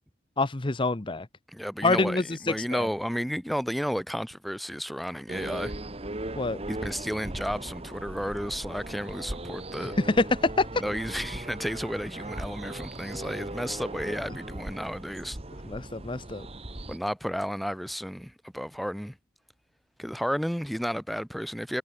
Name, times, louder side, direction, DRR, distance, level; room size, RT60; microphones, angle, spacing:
voice 1, 0.4-1.3 1.8-2.9 6.3-6.6 10.0-10.8 15.6-16.5, left 3 dB, 25° left, 0.8 m, -26 dB
voice 2, 1.5-5.7 6.7-9.9 10.8-15.4 16.9-19.2 20.0-21.8, equal, ahead, 0.6 m, -32 dB
sound 1, 5.3-17.0, right 1 dB, 35° right, 1.9 m, -38 dB
head